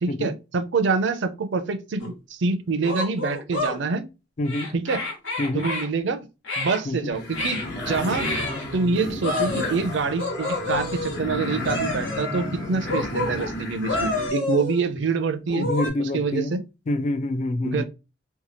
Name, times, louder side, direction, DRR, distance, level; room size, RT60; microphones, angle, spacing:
voice 1, 0.0-4.0 4.7-5.0 5.5-6.2 6.6-7.6 7.9-8.3 8.7-15.7 16.0-16.6 17.6-17.8, right 4 dB, 65° right, 0.5 m, -26 dB
sound 1, 2.0-2.1 2.8-3.8 4.4-5.9 6.4-6.8 7.3-7.7 8.1-8.6 9.2-9.8 10.2-11.2 11.6-12.2 12.8-13.5 13.8-14.9 15.5-15.9, left 3 dB, 90° left, 1.2 m, -29 dB
voice 2, 4.4-4.7 5.4-5.7 6.9-7.1 15.5-16.6 16.9-17.8, left 1 dB, 40° left, 0.3 m, -26 dB
sound 2, 7.1-14.3, left 1 dB, 65° left, 1.0 m, -32 dB
2.8 x 2.3 x 2.9 m
head